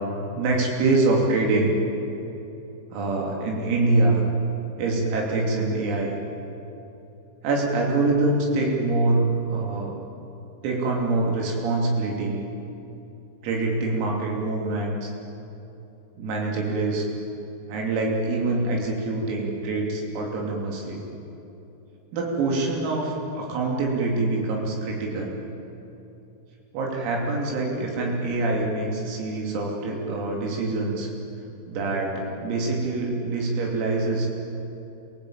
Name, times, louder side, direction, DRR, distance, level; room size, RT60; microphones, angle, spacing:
voice 1, 0.3-1.8 2.9-4.2 4.8-6.2 7.4-10.0 10.6-12.4 13.4-15.1 16.2-17.1 17.7-21.0 22.1-25.4 26.7-31.1 31.7-34.3, right 2 dB, 85° right, -1 dB, 5.7 m, -25 dB
29.0 x 18.0 x 8.8 m, 2.9 s
omnidirectional pair, 5.9 m